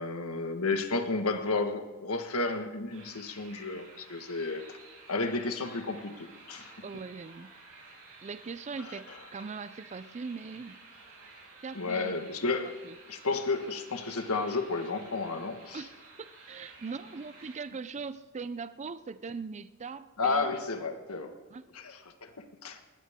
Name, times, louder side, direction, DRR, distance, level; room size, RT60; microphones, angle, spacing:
voice 1, 0.0-4.8 5.1-6.7 8.9-9.0 11.7-12.7 13.1-15.8 20.2-21.3 21.7-22.8, left 3 dB, 70° left, 6 dB, 1.6 m, -32 dB
sound 1, 2.9-17.6, right 3 dB, 70° right, 6.3 m, -53 dB
voice 2, 6.8-7.5 8.2-10.8 11.6-12.1 12.8-13.0 15.7-20.5 21.5-21.7, right 4 dB, 30° right, 14 dB, 0.4 m, -40 dB
20.0 x 19.5 x 3.7 m, 1.2 s
head